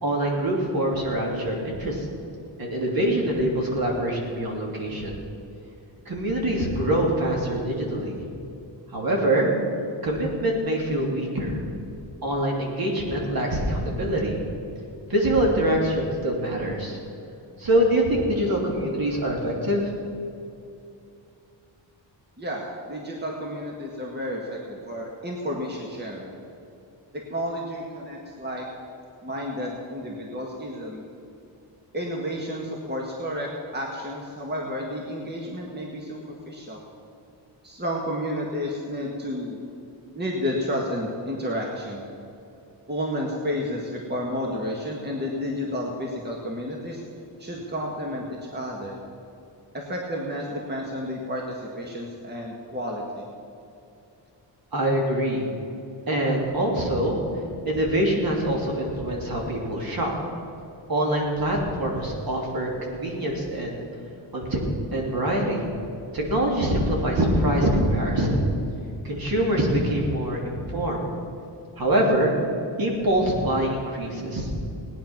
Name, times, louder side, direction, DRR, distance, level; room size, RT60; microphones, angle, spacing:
voice 1, 0.0-2.1 2.6-5.1 6.0-8.2 8.9-9.5 10.0-11.6 12.2-14.4 15.1-17.0 17.6-19.9 54.7-55.5 56.1-57.2 57.6-60.2 60.9-63.8 64.3-64.6 64.9-65.6 66.1-68.4 69.0-71.1 71.8-72.3 72.8-74.5, right 1 dB, 50° right, -1 dB, 3.1 m, -24 dB
voice 2, 22.4-26.3 27.1-28.7 29.2-31.0 31.9-36.8 37.6-39.6 40.1-42.0 42.9-47.0 47.4-49.0 49.7-53.3, equal, 20° right, -1 dB, 1.7 m, -31 dB
18.0 x 9.9 x 6.0 m, 2.7 s
wide cardioid pair, 135°, 45 cm